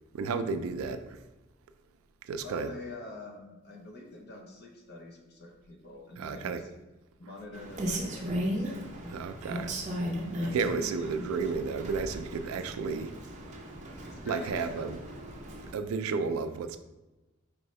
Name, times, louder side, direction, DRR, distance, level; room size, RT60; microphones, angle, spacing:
voice 1, 0.1-1.0 2.3-2.7 6.2-6.6 9.1-9.7 10.5-13.1 14.3-15.0 15.7-16.8, right 5 dB, 80° right, 9 dB, 0.3 m, -32 dB
voice 2, 2.4-6.7 7.2-9.1 10.4-11.6 14.0-14.9, left 2 dB, 50° left, 1 dB, 0.7 m, -46 dB
Rain, 7.5-15.7, equal, 35° right, 0.6 m, -37 dB
4.4 x 2.7 x 3.1 m, 1.1 s
head